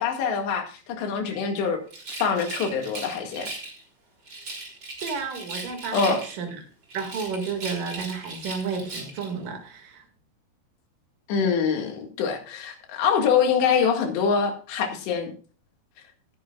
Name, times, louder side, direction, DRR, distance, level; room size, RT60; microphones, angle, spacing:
voice 1, 0.0-1.8 2.1-3.5 5.9-6.2 11.3-15.3, left 6 dB, 85° left, 4 dB, 4.2 m, -24 dB
Rattle, 1.9-3.8 4.3-6.5 6.9-9.3, right 2 dB, 25° right, 3.6 m, -37 dB
voice 2, 5.0-6.7 6.9-10.0, right 5 dB, 55° right, 5 dB, 3.5 m, -32 dB
18.0 x 10.5 x 2.4 m, 0.39 s
omnidirectional pair, 4.8 m